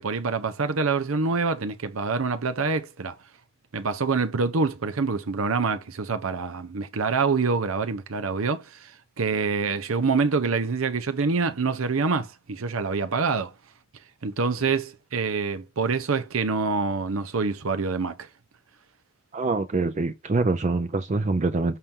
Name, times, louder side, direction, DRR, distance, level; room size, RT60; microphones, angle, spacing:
voice 1, 0.0-3.2 3.7-8.9 9.2-13.5 14.2-18.3, right 4 dB, 90° right, 0.8 m, -26 dB
voice 2, 19.3-21.8, right 3 dB, 35° right, 0.5 m, -25 dB
6.6 x 4.4 x 3.7 m
head